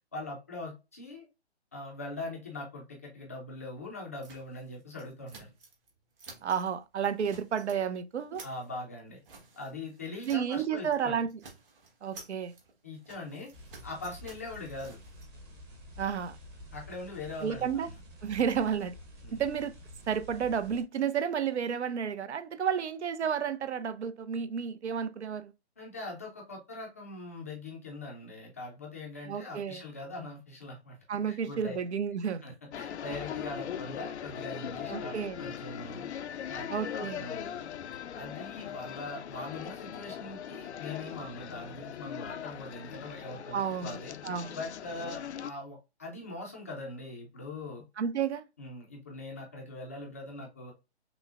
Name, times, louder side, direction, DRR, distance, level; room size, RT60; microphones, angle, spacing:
voice 1, 0.1-1.3 1.7-5.5 8.4-9.2 9.6-11.3 12.8-13.5 13.8-15.0 16.7-17.9 19.2-19.4 25.8-31.0 31.3-31.8 32.4-36.1 36.5-37.7 38.1-44.1 44.5-47.8 48.6-50.7, left 2 dB, 15° left, 0.4 m, -42 dB
sound 1, 4.2-5.9 6.2-6.7 7.0-7.8 8.1-10.6 10.9-11.0 11.3-15.2, right 3 dB, 55° right, 1.4 m, -53 dB
voice 2, 6.4-8.4 10.2-11.3 12.0-12.5 16.0-16.4 17.4-17.9 18.2-18.9 19.3-19.7 20.1-25.5 29.3-29.8 31.1-32.6 34.9-35.4 36.7-37.2 43.5-43.9 44.2-44.6 48.0-48.4, right 7 dB, 85° right, 0.6 m, -31 dB
sound 2, 13.5-20.8, equal, 15° right, 0.8 m, -49 dB
sound 3, 32.7-45.5, left 9 dB, 85° left, 0.5 m, -40 dB
6.0 x 2.1 x 2.4 m
hypercardioid pair, 145°, 33 cm